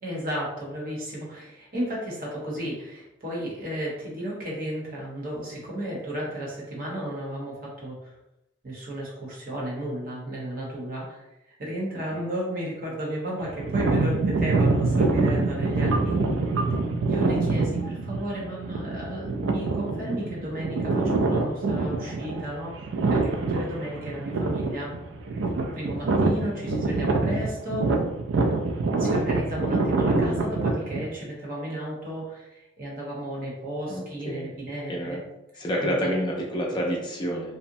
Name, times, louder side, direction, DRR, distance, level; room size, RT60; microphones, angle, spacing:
voice 1, 0.0-8.1 8.6-11.2 11.6-16.3 17.1-22.8 23.1-24.9 25.7-27.9 29.0-35.2 35.8-36.1, right 1 dB, 50° right, -4 dB, 0.9 m, -33 dB
sound 1, 13.4-31.1, right 3 dB, 85° right, 0.4 m, -25 dB
voice 2, 33.9-35.2 35.6-37.6, equal, 25° left, -2 dB, 0.4 m, -29 dB
2.8 x 2.1 x 2.6 m, 0.92 s
head